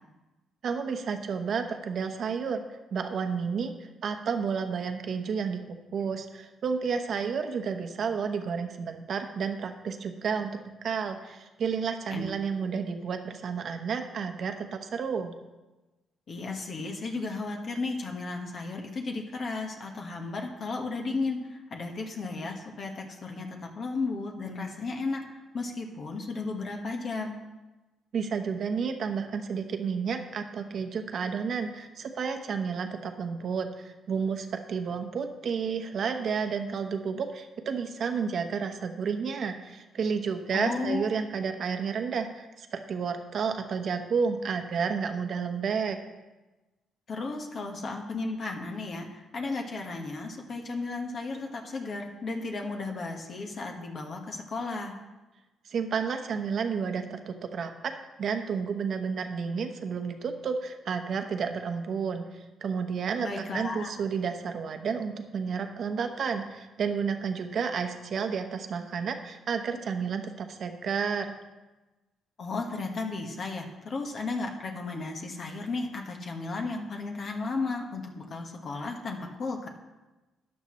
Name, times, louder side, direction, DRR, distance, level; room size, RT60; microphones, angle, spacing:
voice 1, 0.6-5.6 5.9-10.5 10.8-15.3 28.1-46.0 55.6-57.9 58.2-71.3, right 6 dB, 60° right, 6 dB, 1.1 m, -31 dB
voice 2, 12.1-12.6 16.3-27.4 40.5-41.2 47.1-55.0 63.2-63.9 72.4-79.7, left 3 dB, 50° left, 2 dB, 1.5 m, -34 dB
13.5 x 9.6 x 3.2 m, 1.1 s
cardioid pair, 90°, 0 cm